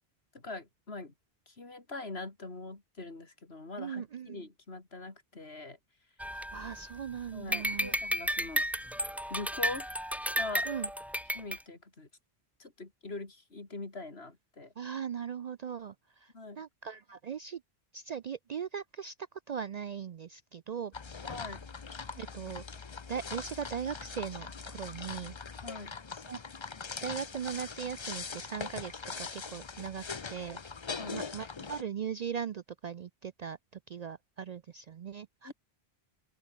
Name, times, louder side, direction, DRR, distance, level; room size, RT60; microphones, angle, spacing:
voice 1, 0.3-1.1 1.5-5.8 7.3-8.7 9.3-9.9 10.4-10.7 11.3-12.1 12.6-14.7 16.3-16.6 21.2-21.7 25.6-25.9 30.9-31.2 35.4-35.5, left 3 dB, 75° left, 3.4 m, -43 dB
voice 2, 3.8-4.4 6.3-7.9 10.7-10.9 14.8-17.6 17.9-19.1 19.5-20.9 22.1-22.6 23.1-25.3 26.1-26.4 27.0-30.0 30.3-30.6 31.1-33.6 33.9-35.5, right 7 dB, 55° right, 0.5 m, -39 dB
sound 1, 6.2-7.1 7.5-11.6, equal, ahead, 1.2 m, -33 dB
sound 2, 20.9-31.8, left 5 dB, 30° left, 0.7 m, -42 dB
open air
omnidirectional pair, 1.1 m